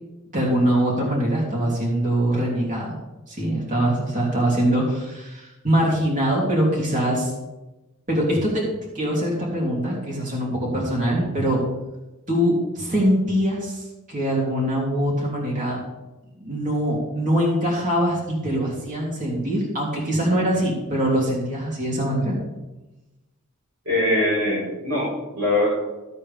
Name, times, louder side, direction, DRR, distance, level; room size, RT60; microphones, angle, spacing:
voice 1, 0.3-2.9 3.3-7.3 8.1-8.7 8.9-11.6 12.3-15.8 16.4-22.3, equal, 35° right, -4 dB, 3.1 m, -23 dB
voice 2, 23.8-25.7, left 1 dB, 70° right, -8 dB, 4.4 m, -22 dB
14.5 x 8.4 x 3.5 m, 1.0 s
head